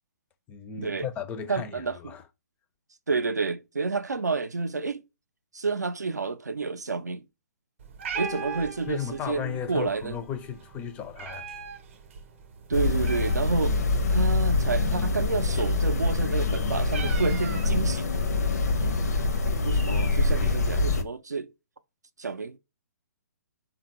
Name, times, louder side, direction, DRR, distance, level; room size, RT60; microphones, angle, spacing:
voice 1, 0.5-2.2 8.9-11.5, left 8 dB, 15° left, 0.4 m, -35 dB
voice 2, 1.5-2.1 3.1-5.0 5.5-7.2 8.1-10.2 12.7-13.8 14.1-18.1 18.8-19.0 19.6-21.5 22.2-22.6, right 4 dB, 85° right, 0.4 m, -29 dB
Meow, 7.8-18.2, right 6 dB, 45° right, 0.6 m, -42 dB
sound 1, 8.2-10.7 11.7-11.8, equal, 85° left, 0.9 m, -45 dB
sound 2, 12.7-21.0, left 3 dB, 70° left, 0.6 m, -25 dB
3.5 x 2.2 x 2.8 m
figure-of-eight pair, 130°, 9 cm